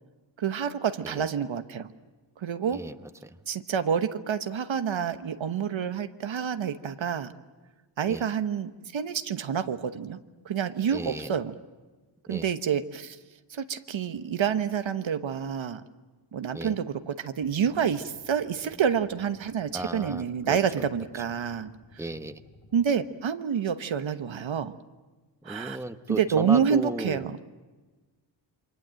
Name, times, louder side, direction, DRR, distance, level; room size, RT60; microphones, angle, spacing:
voice 1, 0.4-1.9 2.4-2.8 3.5-7.3 8.0-10.2 10.4-11.5 12.3-13.2 13.5-15.8 16.3-21.7 22.7-24.8 25.4-25.8 26.1-27.5, right 7 dB, 70° right, 10 dB, 1.2 m, -28 dB
voice 2, 10.9-11.3 12.3-12.5 16.5-16.8 19.7-20.6 22.0-22.4 25.4-27.3, right 2 dB, 5° right, 9 dB, 1.1 m, -35 dB
sound 1, 17.4-22.9, left 2 dB, 45° left, 2.7 m, -56 dB
28.0 x 24.0 x 7.7 m, 1.3 s
wide cardioid pair, 85°, 47 cm